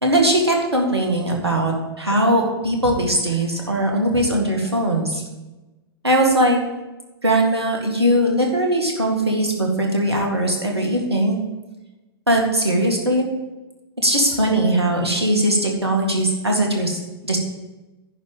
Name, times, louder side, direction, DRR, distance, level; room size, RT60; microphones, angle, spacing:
voice 1, 0.0-5.2 6.0-6.6 7.2-11.4 12.3-13.3 14.0-17.4, right 1 dB, 85° right, 1 dB, 2.1 m, -20 dB
10.5 x 5.0 x 7.3 m, 1.1 s
figure-of-eight pair, 105°, 13 cm